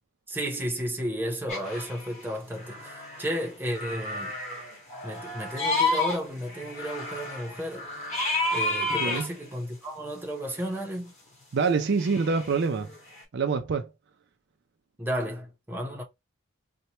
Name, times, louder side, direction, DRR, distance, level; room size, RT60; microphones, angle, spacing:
voice 1, 0.3-4.3 5.0-7.9 8.5-11.1 15.0-16.0, equal, 10° right, 0.7 m, -33 dB
sound 1, 1.5-2.2 2.4-3.5 3.7-6.2 6.5-9.3 12.0-13.2, left 2 dB, 35° left, 1.5 m, -31 dB
voice 2, 8.9-9.3 11.5-12.9 13.3-13.9, right 4 dB, 50° right, 0.4 m, -26 dB
4.2 x 2.2 x 2.9 m
head